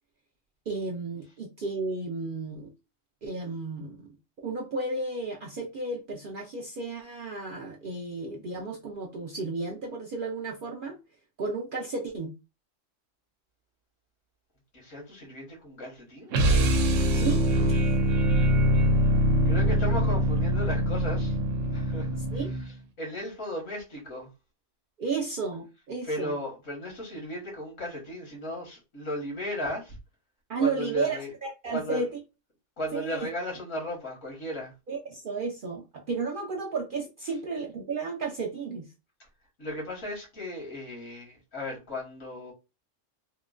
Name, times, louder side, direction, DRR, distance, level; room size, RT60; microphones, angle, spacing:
voice 1, 0.7-2.7 3.2-4.1 4.4-11.0 11.4-12.3 17.1-17.8 22.3-22.5 25.0-26.3 30.5-32.1 32.9-33.3 34.9-38.9, right 4 dB, 60° right, 0.5 m, -33 dB
voice 2, 14.7-16.3 19.5-21.4 21.7-24.3 26.0-30.0 30.6-31.3 31.6-32.1 32.8-34.7 39.6-42.5, left 1 dB, 75° left, 1.8 m, -36 dB
sound 1, 16.3-22.8, equal, 80° right, 1.0 m, -23 dB
3.6 x 2.1 x 2.4 m
omnidirectional pair, 1.3 m